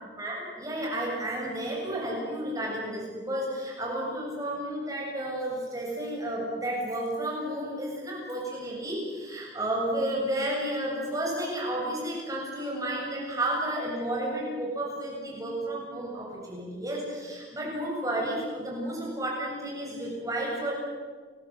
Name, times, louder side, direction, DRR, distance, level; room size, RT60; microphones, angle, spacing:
voice 1, 0.2-20.8, right 1 dB, 20° right, -3 dB, 7.3 m, -32 dB
30.0 x 22.0 x 7.9 m, 1.5 s
head